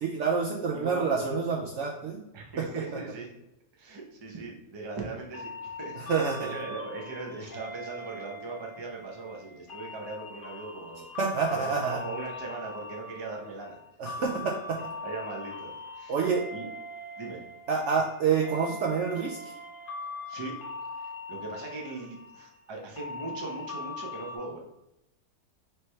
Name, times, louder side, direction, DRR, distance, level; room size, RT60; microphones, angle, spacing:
voice 1, 0.0-2.2 2.6-2.8 6.0-6.5 11.2-12.0 14.0-14.8 16.1-16.5 17.7-19.5, right 5 dB, 70° right, -1 dB, 0.7 m, -28 dB
voice 2, 0.7-1.1 2.3-3.3 3.7-11.1 11.5-13.8 14.2-14.4 15.0-16.2 16.5-16.7 17.2-17.4 20.3-20.5 21.0-24.6, right 3 dB, 35° right, -1 dB, 0.4 m, -39 dB
sound 1, 5.3-24.4, left 2 dB, 40° left, 0.9 m, -41 dB
4.4 x 3.3 x 3.2 m, 0.87 s
omnidirectional pair, 1.7 m